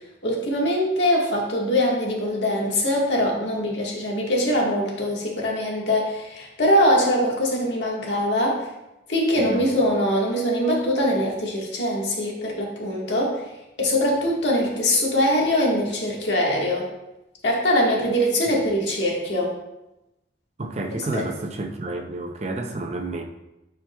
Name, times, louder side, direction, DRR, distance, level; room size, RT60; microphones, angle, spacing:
voice 1, 0.2-8.7 9.1-13.4 13.8-16.9 17.4-19.5 20.9-21.2, equal, 90° left, -3 dB, 1.6 m, -22 dB
voice 2, 20.6-23.2, right 2 dB, 40° right, 4 dB, 0.6 m, -30 dB
9.2 x 4.5 x 2.3 m, 0.94 s
head